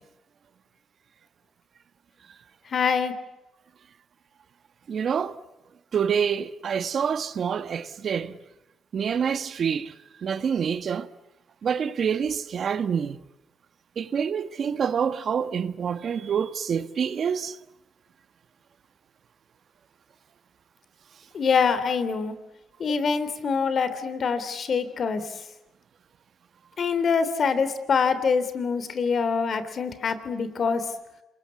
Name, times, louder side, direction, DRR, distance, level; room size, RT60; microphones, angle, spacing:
voice 1, 2.7-3.1 21.3-22.3 22.8-25.2 26.8-30.8, left 5 dB, 50° left, 3.3 m, -25 dB
voice 2, 4.9-5.4 5.9-8.4 8.9-9.9 10.2-11.1 11.6-13.2 14.0-17.6 22.9-23.0, right 7 dB, 55° right, 1.4 m, -27 dB
27.0 x 22.0 x 8.4 m
cardioid pair, 90°, 0 cm